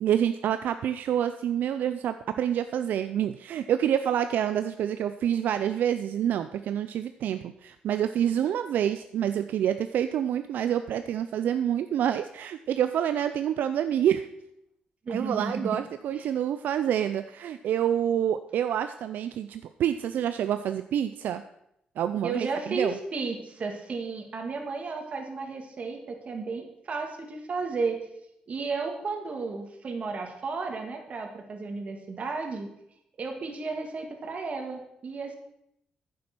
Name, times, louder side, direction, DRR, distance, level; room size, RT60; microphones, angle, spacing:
voice 1, 0.0-14.3 15.1-21.4 22.0-22.9, right 10 dB, 80° right, 10 dB, 0.4 m, -27 dB
voice 2, 15.0-15.8 16.1-16.2 22.2-28.0 28.5-32.7 33.2-35.3, right 4 dB, 45° right, 3 dB, 2.0 m, -33 dB
9.7 x 7.5 x 6.0 m, 0.79 s
cardioid pair, 105°, 3 cm